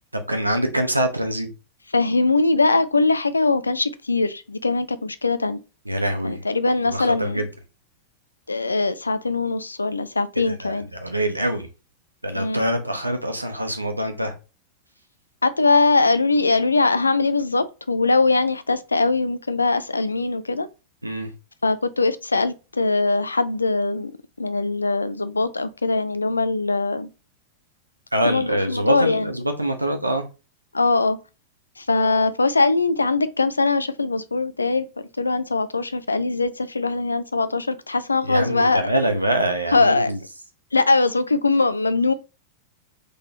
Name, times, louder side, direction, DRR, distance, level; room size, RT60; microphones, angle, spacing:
voice 1, 0.1-1.5 5.9-6.4 6.8-7.4 10.5-11.7 12.2-14.3 21.0-21.3 28.1-30.3 38.2-40.2, right 1 dB, 85° right, 0.7 m, -24 dB
voice 2, 1.9-5.6 6.2-7.4 8.5-10.9 12.3-12.7 15.4-20.7 21.6-24.1 24.4-27.1 28.2-29.3 30.7-31.2 31.8-34.9 35.2-38.8 39.7-40.1 40.7-42.1, left 3 dB, 80° left, 0.4 m, -21 dB
3.9 x 2.9 x 2.8 m
figure-of-eight pair, 90°, 0 cm